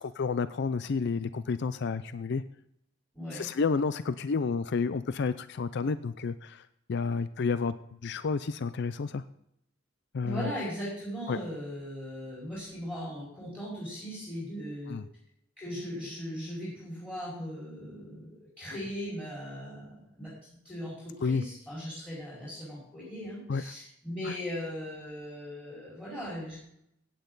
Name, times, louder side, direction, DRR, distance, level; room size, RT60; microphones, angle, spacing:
voice 1, 0.0-2.4 3.3-6.6 6.9-7.8 8.0-9.2 10.1-10.5 11.3-11.4 14.9-15.0 21.2-21.4 23.5-23.6 24.2-24.3, left 4 dB, 60° left, 13 dB, 0.4 m, -30 dB
voice 2, 3.1-3.5 10.2-15.0 15.6-20.3 20.6-26.6, equal, 10° left, -9 dB, 5.0 m, -38 dB
16.0 x 8.9 x 3.9 m, 0.75 s
head